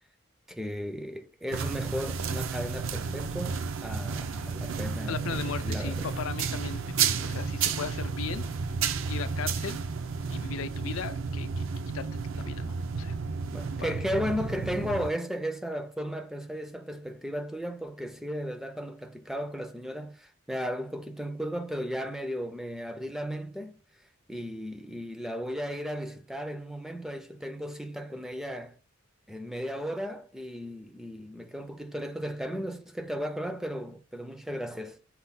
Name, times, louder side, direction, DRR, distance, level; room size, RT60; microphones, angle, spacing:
voice 1, 0.5-6.0 13.5-23.8 24.3-28.8 29.3-35.1, equal, ahead, 0.3 m, -35 dB
sound 1, 1.5-15.1, right 5 dB, 65° right, 0.4 m, -32 dB
voice 2, 5.1-8.4 9.1-9.8 10.3-11.7 11.9-12.1 12.3-13.2 13.8-13.9, left 7 dB, 75° left, 0.4 m, -37 dB
5.6 x 2.1 x 4.0 m
head